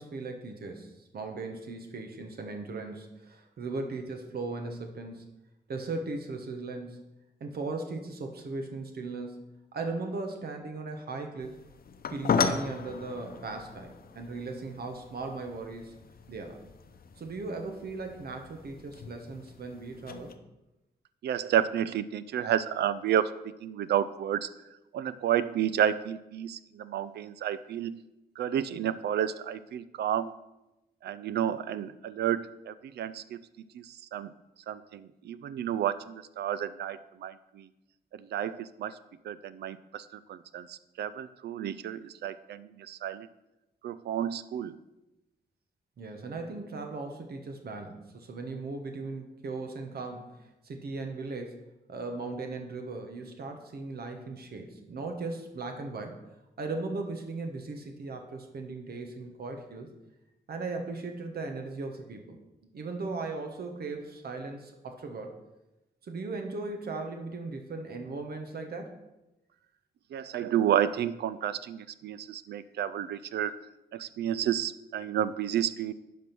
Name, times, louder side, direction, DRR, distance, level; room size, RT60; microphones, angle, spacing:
voice 1, 0.0-5.3 5.7-7.0 7.4-11.6 12.1-15.9 16.3-16.6 17.2-20.4 46.0-51.6 51.9-56.2 56.6-59.9 60.5-65.4 66.0-69.0, right 3 dB, 65° right, 5 dB, 1.2 m, -38 dB
sound 1, 11.4-20.4, left 6 dB, 60° left, 0.7 m, -36 dB
voice 2, 21.2-23.3 23.6-24.5 24.9-28.0 28.4-30.3 31.0-33.4 33.7-34.3 34.7-37.7 38.1-39.0 39.2-43.3 43.8-44.8 70.1-73.5 73.9-75.9, right 10 dB, 85° right, 15 dB, 0.4 m, -31 dB
10.5 x 3.7 x 6.0 m, 0.96 s
cardioid pair, 60°, 17 cm